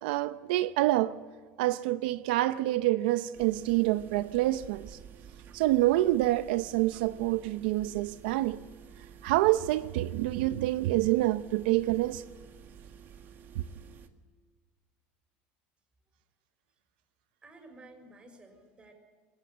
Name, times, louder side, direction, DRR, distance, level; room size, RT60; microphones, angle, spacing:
voice 1, 0.0-1.2 1.6-5.0 5.5-8.6 9.2-12.2, right 16 dB, 85° right, 0.7 m, -27 dB
sound 1, 3.3-14.1, right 7 dB, 45° right, 2.0 m, -51 dB
voice 2, 17.4-18.9, right 2 dB, 20° right, 6.1 m, -53 dB
21.5 x 18.0 x 9.2 m
supercardioid pair, 130°, 5 cm